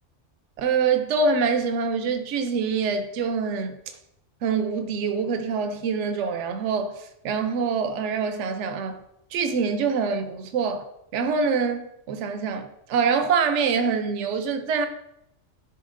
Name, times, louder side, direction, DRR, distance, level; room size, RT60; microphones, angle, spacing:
voice 1, 0.6-4.0 4.4-9.0 9.3-10.8 11.1-14.9, right 5 dB, 75° right, 0.9 m, -25 dB
10.5 x 4.5 x 2.6 m
omnidirectional pair, 1.3 m